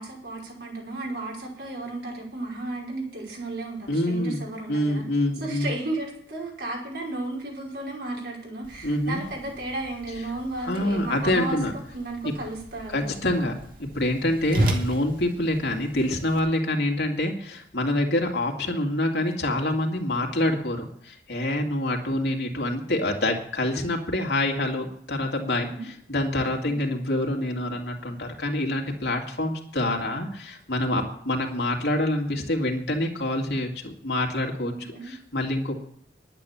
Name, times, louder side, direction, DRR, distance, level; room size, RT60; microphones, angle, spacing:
voice 1, 0.0-5.0 5.4-11.6 11.9-13.0 13.4-13.5 25.7-25.9 34.7-35.1, right 2 dB, 70° right, -3 dB, 5.3 m, -34 dB
voice 2, 3.9-4.4 4.7-5.7 8.8-9.2 10.6-11.7 12.2-12.3 12.9-34.7 35.0-35.8, left 1 dB, 80° left, 2 dB, 2.5 m, -26 dB
Whoosh swoosh swish, 8.6-16.4, right 1 dB, 55° right, 2.3 m, -34 dB
11.0 x 9.1 x 7.0 m, 0.66 s
head